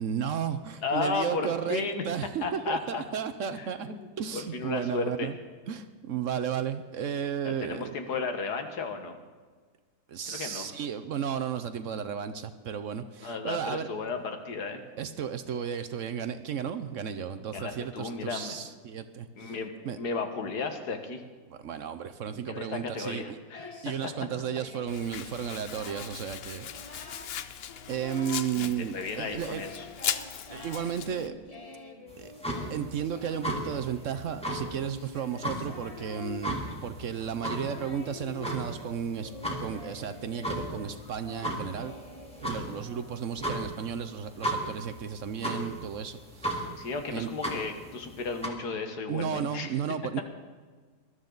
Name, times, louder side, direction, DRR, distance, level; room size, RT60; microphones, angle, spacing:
voice 1, 0.0-5.4 5.7-8.0 10.1-13.9 15.0-19.6 19.8-20.0 21.5-23.4 23.8-27.2 27.9-29.6 30.5-31.3 32.2-32.3 32.7-39.3 39.6-41.9 42.4-46.6 47.1-47.3 49.1-50.2, right 8 dB, 60° right, 11 dB, 0.9 m, -34 dB
voice 2, 0.8-2.1 2.4-3.0 3.5-4.0 4.3-5.3 7.4-9.2 10.3-10.7 13.2-14.8 17.5-18.6 19.4-21.2 22.5-23.8 28.6-29.9 46.8-49.8, left 4 dB, 85° left, 6 dB, 1.9 m, -34 dB
Singing, 23.5-25.0 25.4-26.2 26.6-27.4 27.7-28.6 29.0-43.5, left 3 dB, 25° left, 1.1 m, -47 dB
Domestic sounds home sounds, 24.9-31.3, left 9 dB, 60° left, 0.6 m, -38 dB
sound 1, 32.1-48.5, right 1 dB, 5° left, 1.8 m, -36 dB
20.0 x 12.5 x 3.9 m, 1.5 s
omnidirectional pair, 1.7 m